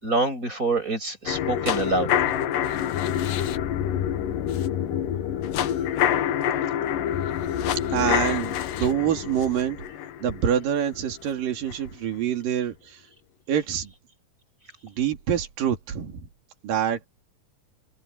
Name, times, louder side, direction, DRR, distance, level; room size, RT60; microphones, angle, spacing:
voice 1, 0.0-2.1, right 3 dB, 20° right, 7.1 m, -26 dB
sound 1, 1.3-11.3 11.7-11.8, left 10 dB, 70° left, 2.7 m, -26 dB
voice 2, 4.9-5.3 7.9-9.8 10.2-13.0 13.5-13.9 14.8-16.2 16.6-17.1, right 9 dB, 70° right, 4.3 m, -26 dB
omnidirectional pair, 4.1 m